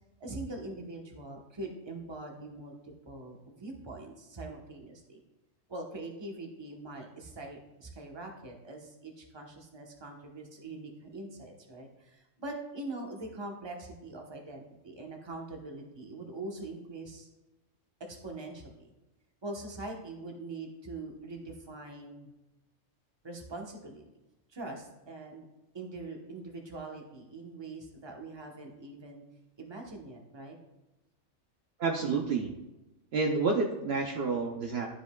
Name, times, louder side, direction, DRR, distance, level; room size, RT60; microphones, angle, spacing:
voice 1, 0.2-5.2 5.7-17.3 18.1-18.9 19.4-22.3 23.2-24.0 24.5-25.4 25.7-29.2 29.6-30.6, right 2 dB, 25° right, 1 dB, 1.0 m, -43 dB
voice 2, 31.8-32.5 33.1-34.9, right 4 dB, 60° right, 1 dB, 0.9 m, -29 dB
11.5 x 5.1 x 2.3 m, 1.0 s
omnidirectional pair, 1.3 m